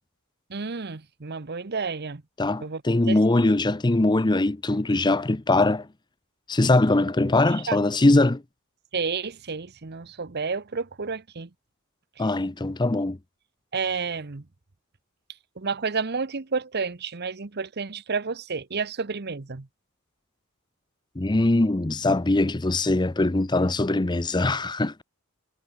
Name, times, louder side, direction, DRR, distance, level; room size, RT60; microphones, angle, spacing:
voice 1, 0.5-2.2 2.6-2.8 3.1-3.2 7.4-7.8 8.9-11.5 13.7-14.4 15.6-19.7, right 5 dB, 45° right, 0.9 m, -30 dB
voice 2, 2.4-5.9 6.5-8.4 12.2-13.2 21.2-25.0, left 2 dB, 20° left, 0.6 m, -22 dB
head